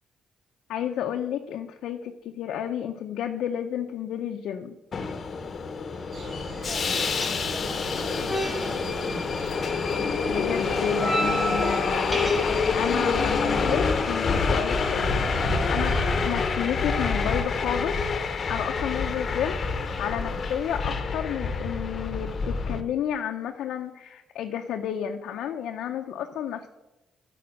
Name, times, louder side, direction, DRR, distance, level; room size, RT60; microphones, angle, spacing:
voice 1, 0.7-4.8 10.3-12.4 12.7-18.0 18.5-26.7, left 9 dB, 80° left, 4 dB, 0.6 m, -31 dB
Subway metro underground, 4.9-22.8, left 4 dB, 45° left, 0.8 m, -27 dB
sound 1, 5.9-17.4, right 1 dB, 5° left, 2.8 m, -37 dB
sound 2, 6.1-16.4, right 1 dB, 70° right, 2.9 m, -37 dB
voice 2, 6.6-9.4 18.9-19.2, right 1 dB, 35° right, -4 dB, 2.9 m, -43 dB
8.5 x 5.0 x 7.5 m, 1.0 s
cardioid pair, 90°, 0 cm